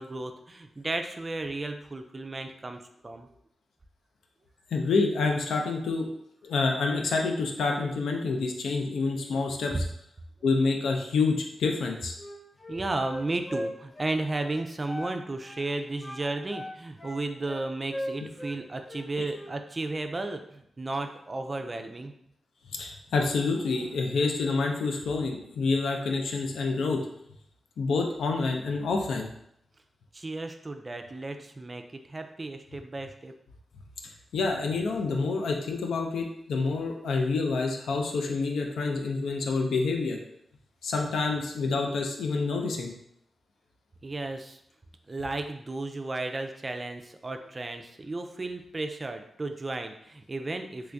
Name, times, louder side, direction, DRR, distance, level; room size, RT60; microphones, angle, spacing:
voice 1, 0.0-3.3 9.7-9.8 12.7-22.1 30.1-33.3 44.0-44.6 45.1-50.9, right 2 dB, 35° right, 6 dB, 0.4 m, -34 dB
voice 2, 4.7-6.1 6.4-9.8 10.4-12.1 22.7-27.0 27.8-29.3 34.3-40.2 40.8-42.9, left 4 dB, 85° left, 2 dB, 0.5 m, -27 dB
Wind instrument woodwind instrument, 12.2-15.2 15.4-15.7 16.0-18.6 18.9-19.6, equal, 25° left, 0.6 m, -38 dB
3.1 x 2.5 x 3.4 m, 0.75 s
cardioid pair, 65°, 0 cm